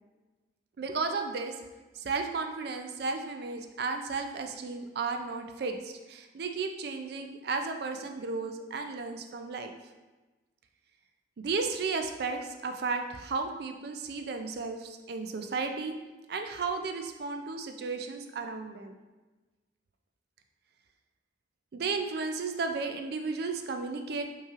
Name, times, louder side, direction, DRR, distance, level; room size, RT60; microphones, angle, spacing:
voice 1, 0.8-1.5 2.0-9.7 11.4-15.9 16.3-19.0 21.7-24.2, right 4 dB, 55° right, 5 dB, 0.4 m, -34 dB
5.4 x 3.1 x 2.4 m, 1.2 s
head